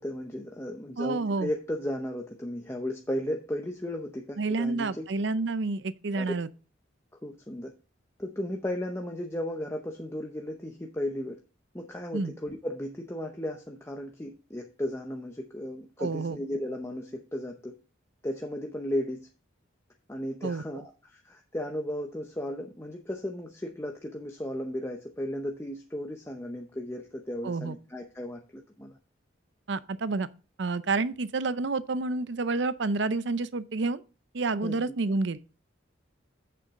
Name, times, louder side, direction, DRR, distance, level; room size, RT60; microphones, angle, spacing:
voice 1, 0.0-5.1 6.1-6.3 7.2-7.7 8.2-11.4 11.7-17.7 18.2-19.3 20.1-29.0 34.6-34.7, left 1 dB, 15° left, 0.8 m, -35 dB
voice 2, 1.0-1.5 4.4-6.5 12.1-12.3 16.0-16.4 20.4-20.6 27.4-27.7 29.7-30.3 30.6-34.0 34.3-35.4, right 3 dB, 65° right, 0.6 m, -29 dB
8.5 x 6.9 x 3.7 m
head